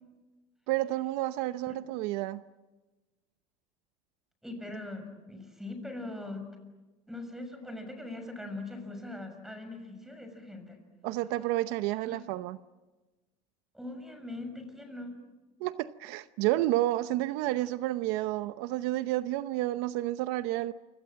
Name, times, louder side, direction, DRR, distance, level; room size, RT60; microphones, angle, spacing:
voice 1, 0.7-2.4 11.0-12.6 15.6-20.7, right 16 dB, 70° right, 0.8 m, -30 dB
voice 2, 4.4-6.5 7.1-10.8 12.0-12.2 13.7-15.2 17.4-17.5, left 2 dB, ahead, 6.4 m, -41 dB
29.5 x 26.0 x 7.6 m
cardioid pair, 140°, 16 cm